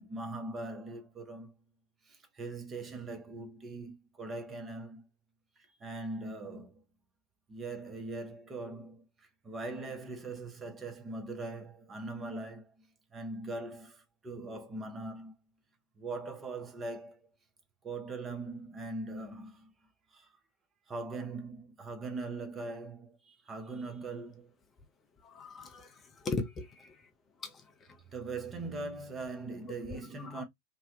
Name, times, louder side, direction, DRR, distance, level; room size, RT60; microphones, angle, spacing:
voice 1, 0.0-1.8 2.0-5.1 5.6-6.8 7.5-12.8 13.1-15.3 16.0-17.3 17.8-19.7 20.1-20.3 20.9-24.5 28.1-30.4, right 2 dB, 20° right, 0.7 m, -41 dB
voice 2, 25.2-27.0 27.4-27.6 29.9-30.4, left 3 dB, 20° left, 0.5 m, -39 dB
2.6 x 2.1 x 2.5 m
figure-of-eight pair, 90°, 0 cm